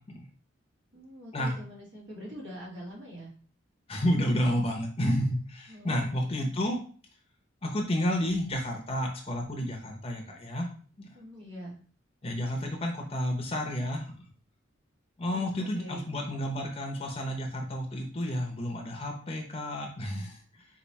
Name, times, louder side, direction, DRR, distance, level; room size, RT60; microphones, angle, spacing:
voice 1, 0.9-3.3 5.7-6.5 11.1-11.8 15.3-16.1, equal, 65° right, -4 dB, 1.9 m, -44 dB
voice 2, 3.9-6.8 7.6-10.7 11.0-11.1 12.2-14.1 15.2-20.7, equal, 30° left, 2 dB, 0.7 m, -31 dB
4.7 x 2.5 x 4.1 m, 0.42 s
head